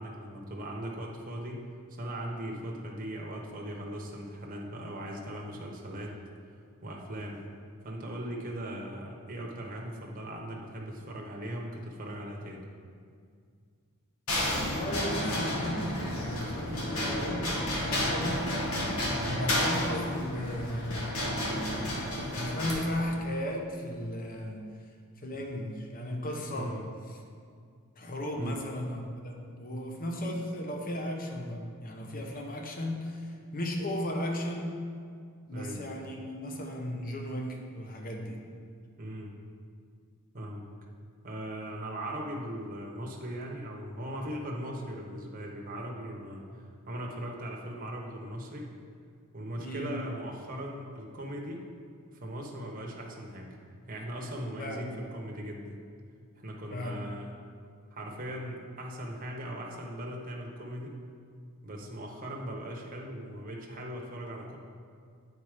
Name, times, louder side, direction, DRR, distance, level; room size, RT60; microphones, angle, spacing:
voice 1, 0.0-6.2 6.8-7.4 7.8-12.6 19.1-19.4 26.5-26.8 28.3-28.6 35.5-35.8 39.0-39.3 40.3-40.6 41.2-46.4 46.9-48.7 49.3-51.7 52.1-53.6 53.9-55.8 56.4-57.3 57.9-61.0 61.6-64.6, right 1 dB, 40° right, -1 dB, 0.9 m, -39 dB
sound 1, 14.3-22.7, left 1 dB, 70° left, 1.5 m, -31 dB
voice 2, 14.5-24.7 25.2-26.8 27.1-27.2 28.0-34.9 35.5-38.4 49.6-50.0 54.2-54.9 56.7-57.0, left 1 dB, 40° left, 2 dB, 0.8 m, -36 dB
8.7 x 4.2 x 4.9 m, 2.2 s
head